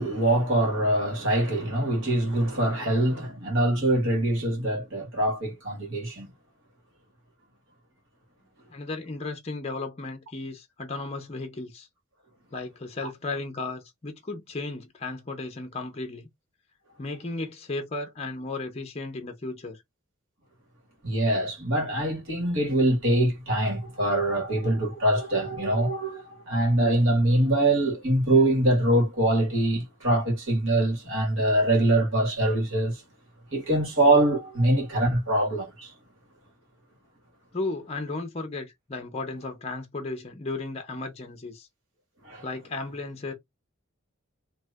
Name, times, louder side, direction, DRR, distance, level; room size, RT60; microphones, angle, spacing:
voice 1, 0.0-6.3 13.0-13.1 21.0-33.0 33.5-35.9 42.2-42.4, right 1 dB, 70° right, 1.7 m, -24 dB
voice 2, 8.7-11.9 12.5-16.3 17.0-19.8 37.5-41.7 42.4-43.3, left 3 dB, 30° left, 0.6 m, -35 dB
2.8 x 2.5 x 3.3 m
head